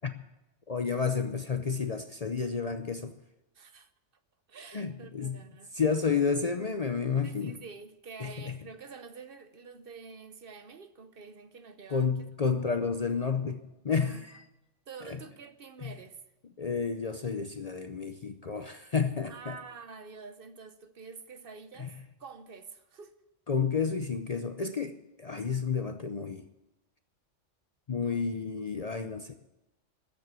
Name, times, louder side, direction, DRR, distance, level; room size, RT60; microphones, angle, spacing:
voice 1, 0.7-3.2 4.7-5.5 5.7-7.6 8.2-8.6 11.9-14.4 15.0-15.2 15.8-16.0 16.6-19.6 21.8-21.9 23.5-26.5 27.9-29.4, left 5 dB, 40° left, 0.6 m, -31 dB
voice 2, 3.5-3.9 4.5-5.7 7.2-12.1 14.0-14.2 14.9-16.2 19.2-21.9 22.2-23.2 28.0-28.3, right 5 dB, 50° right, 0.9 m, -47 dB
13.5 x 7.7 x 9.6 m
omnidirectional pair, 1.3 m